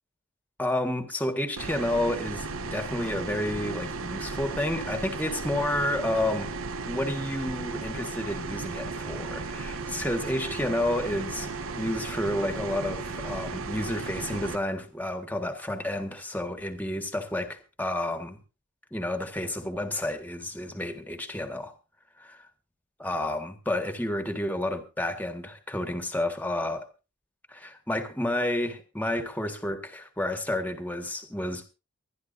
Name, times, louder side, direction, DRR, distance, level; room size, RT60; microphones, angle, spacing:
voice 1, 0.6-6.5 6.9-18.4 18.9-21.7 22.2-22.5 23.0-26.9 27.5-31.6, left 1 dB, 10° left, 1.7 m, -30 dB
sound 1, 1.6-14.6, right 4 dB, 65° right, 1.0 m, -35 dB
23.5 x 11.5 x 2.7 m
head